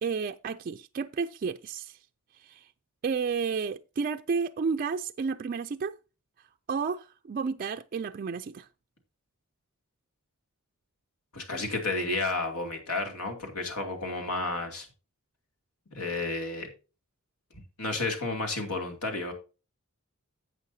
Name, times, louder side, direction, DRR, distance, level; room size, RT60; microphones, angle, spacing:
voice 1, 0.0-2.0 2.4-2.7 3.0-5.9 6.7-8.7, right 5 dB, 40° right, 0.3 m, -31 dB
voice 2, 11.3-14.9 15.9-16.7 17.8-19.3, left 3 dB, 85° left, 2.5 m, -31 dB
11.0 x 8.1 x 2.7 m
head